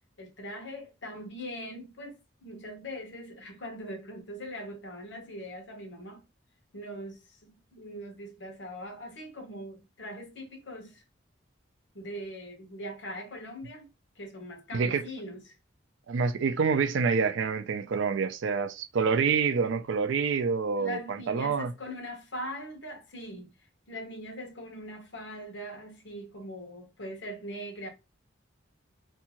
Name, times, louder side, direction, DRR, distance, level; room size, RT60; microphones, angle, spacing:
voice 1, 0.2-6.3 6.7-11.0 11.9-13.9 14.2-15.6 20.8-23.5 23.9-27.9, equal, 70° left, 0.9 m, -41 dB
voice 2, 14.7-15.0 16.1-21.7, right 5 dB, 70° right, 0.4 m, -27 dB
2.7 x 2.3 x 2.9 m
head